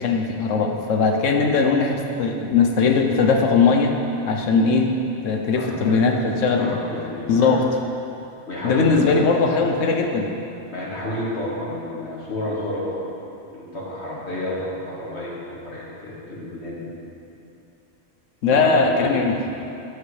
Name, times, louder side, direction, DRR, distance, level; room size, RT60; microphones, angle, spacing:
voice 1, 0.0-3.9 4.3-5.0 5.2-6.8 7.3-7.7 8.6-10.3 18.4-19.4, left 4 dB, 90° left, 3 dB, 1.2 m, -19 dB
voice 2, 5.5-6.0 6.6-7.5 8.5-9.1 10.7-13.0 13.5-16.9 18.5-19.5, left 1 dB, 65° left, -6 dB, 2.1 m, -31 dB
12.5 x 8.0 x 3.3 m, 2.7 s
omnidirectional pair, 1.2 m